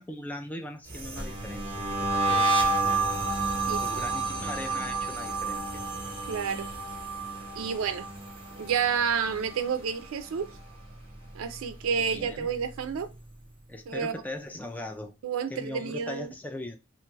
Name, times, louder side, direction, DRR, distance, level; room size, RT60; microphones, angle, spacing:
voice 1, 0.0-3.0 3.8-5.6 11.8-12.5 13.7-15.1 15.5-16.8, left 1 dB, 5° left, 0.3 m, -40 dB
sound 1, 0.9-10.1 10.3-10.8 11.1-12.6, right 3 dB, 25° right, 0.9 m, -30 dB
voice 2, 3.7-4.0 6.3-6.7 7.6-8.1 8.6-10.5 11.3-13.1 13.9-14.1 15.2-16.3, right 6 dB, 75° right, 0.4 m, -30 dB
2.9 x 2.2 x 3.1 m
head